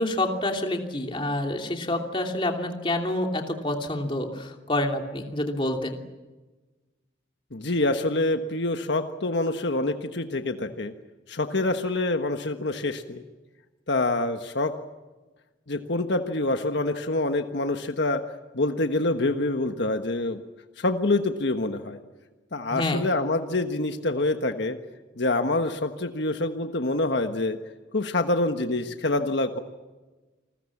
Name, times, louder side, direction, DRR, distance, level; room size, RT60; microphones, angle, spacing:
voice 1, 0.0-6.0 22.7-23.0, left 1 dB, 25° left, 3 dB, 2.9 m, -27 dB
voice 2, 7.5-10.9 11.3-13.2 13.9-14.7 15.7-18.2 18.5-20.4 20.8-22.0 22.5-24.8 25.2-27.6 27.9-29.6, left 2 dB, 65° left, 7 dB, 1.4 m, -26 dB
28.5 x 21.0 x 7.3 m, 1.2 s
head